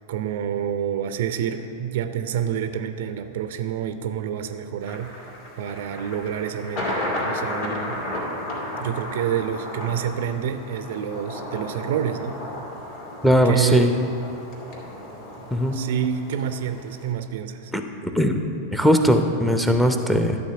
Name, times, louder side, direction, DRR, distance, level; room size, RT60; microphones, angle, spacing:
voice 1, 0.1-7.0 7.2-8.0 8.8-12.4 13.4-13.9 15.7-17.7, right 9 dB, 55° right, 9 dB, 0.5 m, -28 dB
Thunder, 4.8-17.1, left 1 dB, 50° left, 2.3 m, -33 dB
voice 2, 13.2-13.9 15.5-15.8 17.7-18.4 18.7-20.4, equal, ahead, 5 dB, 0.6 m, -19 dB
12.0 x 4.1 x 6.9 m, 2.7 s
figure-of-eight pair, 90°, 0 cm